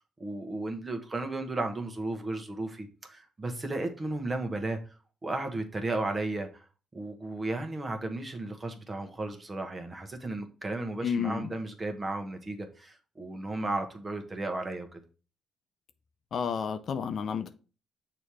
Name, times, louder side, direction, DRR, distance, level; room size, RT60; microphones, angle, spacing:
voice 1, 0.2-4.8 5.2-6.6 6.9-15.0, right 2 dB, 25° right, 1.2 m, -34 dB
voice 2, 11.0-11.5 16.3-17.5, left 6 dB, 60° left, 0.5 m, -31 dB
6.6 x 3.0 x 4.8 m
cardioid pair, 90°, 0 cm